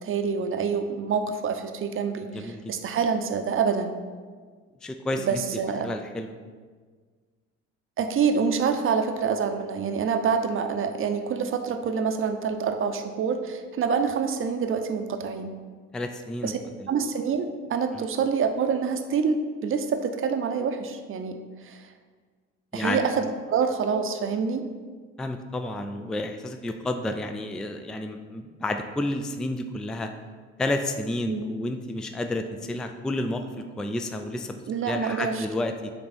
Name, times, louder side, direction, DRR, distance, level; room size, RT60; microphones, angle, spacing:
voice 1, 0.0-4.0 5.2-5.9 8.0-15.5 16.4-16.5 16.9-21.9 22.7-24.6 31.2-31.5 34.7-35.4, right 6 dB, 35° right, 7 dB, 0.7 m, -26 dB
voice 2, 2.3-2.7 4.8-5.4 5.8-6.3 15.9-16.5 16.8-16.9 17.9-18.1 22.7-23.1 25.2-30.1 30.6-34.6 34.8-35.9, left 1 dB, ahead, 7 dB, 0.3 m, -31 dB
7.8 x 3.4 x 4.1 m, 1.5 s
figure-of-eight pair, 55°, 36 cm